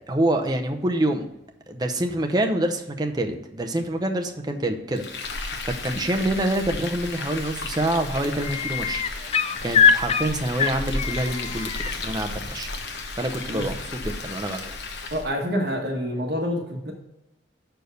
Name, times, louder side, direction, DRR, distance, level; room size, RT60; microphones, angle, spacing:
voice 1, 0.1-1.3 1.7-9.2 9.6-11.7 12.0-12.7 13.2-14.8, right 1 dB, 20° right, 5 dB, 0.6 m, -26 dB
Frying (food), 4.9-15.3, left 3 dB, 65° left, 1.0 m, -34 dB
sound 1, 7.3-7.6 7.9-12.0 13.6-13.7, left 6 dB, 30° left, 0.3 m, -23 dB
voice 2, 15.1-16.9, equal, 60° right, 1 dB, 1.3 m, -27 dB
6.7 x 4.6 x 6.4 m, 0.92 s
head